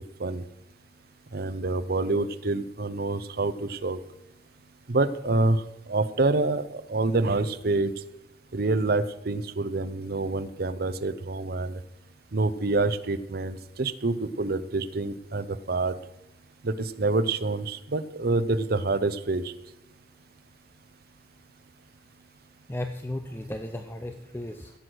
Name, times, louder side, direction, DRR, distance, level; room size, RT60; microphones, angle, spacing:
voice 1, 1.3-4.0 4.9-5.6 5.9-7.9 8.5-11.8 12.3-15.9 16.6-19.5, right 2 dB, 55° right, 12 dB, 0.7 m, -27 dB
voice 2, 22.7-24.7, left 1 dB, 15° left, 6 dB, 0.6 m, -35 dB
16.5 x 7.9 x 6.2 m, 0.95 s
head